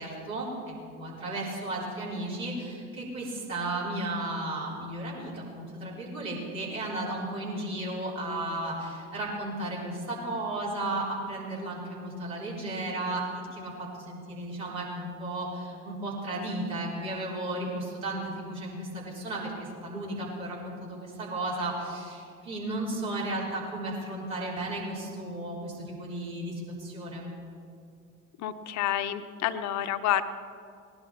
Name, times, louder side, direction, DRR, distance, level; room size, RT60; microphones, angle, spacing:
voice 1, 0.0-13.3 13.5-27.3, right 1 dB, 85° right, -7 dB, 4.2 m, -34 dB
voice 2, 28.4-30.2, left 12 dB, 45° left, 10 dB, 0.8 m, -29 dB
18.5 x 11.0 x 4.4 m, 2.3 s
figure-of-eight pair, 70°, 40 cm